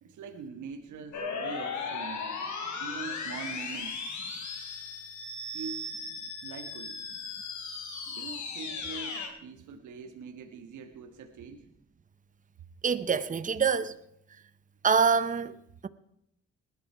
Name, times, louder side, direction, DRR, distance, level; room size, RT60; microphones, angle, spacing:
voice 1, 0.0-2.5 2.8-4.1 5.5-5.9 6.4-7.0 8.1-11.6, right 5 dB, 75° right, 1.6 m, -43 dB
sound 1, 1.1-9.3, left 4 dB, 70° left, 3.5 m, -37 dB
voice 2, 12.8-13.9 14.8-15.6, right 6 dB, 25° right, 0.9 m, -25 dB
19.5 x 11.5 x 4.7 m
cardioid pair, 90°, 30 cm